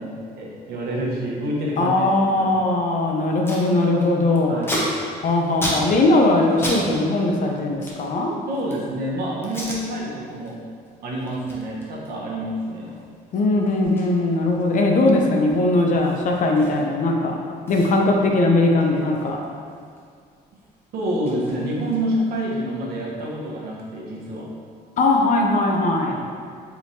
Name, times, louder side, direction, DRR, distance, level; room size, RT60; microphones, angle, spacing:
voice 1, 0.0-2.1 2.3-2.5 4.5-4.7 8.5-10.6 11.0-12.9 20.9-24.5 26.3-26.4, right 1 dB, 65° right, -4 dB, 1.0 m, -27 dB
voice 2, 1.8-4.5 5.2-8.4 13.3-17.4 17.7-19.4 25.0-26.3, left 2 dB, 50° left, 1 dB, 0.6 m, -19 dB
Packing tape duct tape, 3.5-3.6 4.0-6.8 7.1-8.9 9.4-9.8 10.3-10.5 10.8-17.1 17.3-17.4 17.7-20.0 20.3-22.3, equal, 15° left, 0.9 m, -34 dB
4.6 x 3.5 x 2.7 m, 2.1 s
cardioid pair, 110°, 17 cm